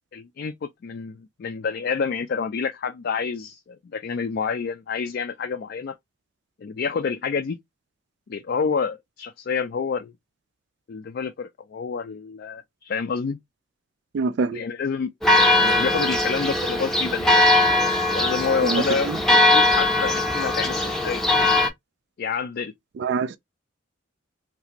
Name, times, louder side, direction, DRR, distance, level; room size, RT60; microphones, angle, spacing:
voice 1, 0.1-5.9 6.6-7.6 8.3-10.1 10.9-13.4 14.5-15.1 15.6-17.4 18.1-19.1 19.5-21.2 22.2-22.7, left 5 dB, 50° left, 0.3 m, -28 dB
voice 2, 14.1-14.6 18.6-19.2 23.0-23.4, right 4 dB, 60° right, 0.3 m, -25 dB
Church bell, 15.2-21.7, left 2 dB, ahead, 0.6 m, -20 dB
3.3 x 2.4 x 2.8 m
head